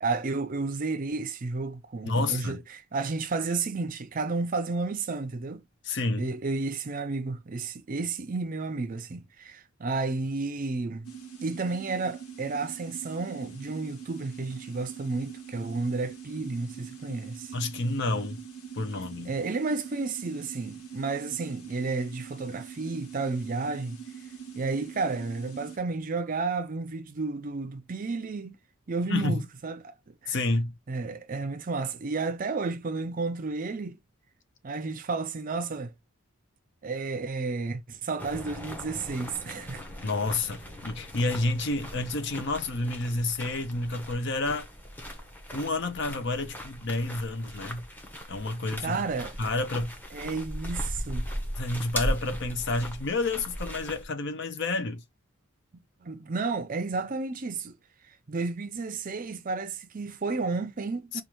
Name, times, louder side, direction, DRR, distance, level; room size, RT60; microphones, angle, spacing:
voice 1, 0.0-5.6 6.2-11.1 11.4-17.6 19.2-24.0 24.6-28.6 28.9-29.9 30.2-30.4 30.9-34.0 34.6-35.9 36.8-39.8 48.8-49.4 50.1-51.3 56.0-57.8 58.3-61.2, right 3 dB, 40° right, 0.5 m, -32 dB
voice 2, 2.0-2.6 5.8-6.3 17.5-18.4 18.7-19.3 29.1-29.4 30.3-30.7 40.0-44.7 45.5-47.8 48.3-49.0 49.4-49.9 51.6-55.0 61.1-61.2, left 2 dB, 50° left, 0.7 m, -29 dB
sound 1, 11.1-25.8, right 7 dB, 75° left, 1.4 m, -43 dB
sound 2, 38.2-54.0, equal, 10° left, 0.9 m, -38 dB
5.3 x 2.4 x 3.1 m
head